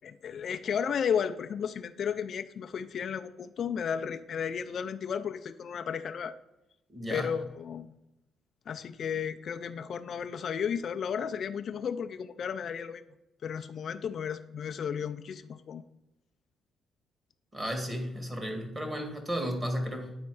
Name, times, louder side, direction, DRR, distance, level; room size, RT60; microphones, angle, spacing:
voice 1, 0.0-6.4 7.1-8.0 8.7-13.0 13.4-15.8, left 7 dB, 60° left, 9 dB, 0.4 m, -33 dB
voice 2, 6.9-7.3 17.5-20.2, equal, 25° right, 3 dB, 1.8 m, -33 dB
9.5 x 4.3 x 4.7 m, 0.90 s
cardioid pair, 90°, 0 cm